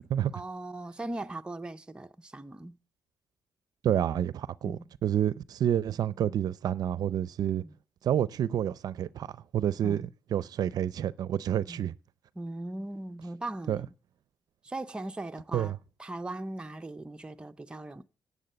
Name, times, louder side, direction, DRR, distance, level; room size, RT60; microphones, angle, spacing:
voice 1, 0.3-2.8 4.6-4.8 7.6-7.7 9.8-10.1 11.7-11.8 12.4-13.9 14.6-15.7 16.0-18.0, right 2 dB, 15° right, 0.6 m, -39 dB
voice 2, 3.8-7.6 8.0-9.3 9.5-10.0 10.3-11.9 13.7-13.8 15.5-15.8, right 10 dB, 65° right, 0.5 m, -28 dB
11.0 x 8.4 x 7.8 m
cardioid pair, 120°, 7 cm